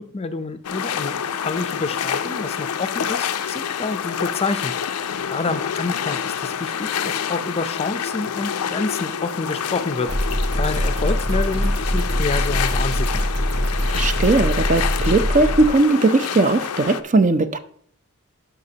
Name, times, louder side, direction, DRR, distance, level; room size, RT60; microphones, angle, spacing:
voice 1, 0.0-4.7 5.3-10.3 10.6-13.4, left 3 dB, 25° left, 11 dB, 0.5 m, -28 dB
sound 1, 0.6-17.0, left 8 dB, 85° left, 0.5 m, -27 dB
sound 2, 10.1-15.7, equal, 85° right, 1.6 m, -23 dB
voice 2, 13.9-17.6, right 3 dB, 35° right, 11 dB, 0.5 m, -18 dB
10.5 x 6.0 x 2.8 m, 0.62 s
head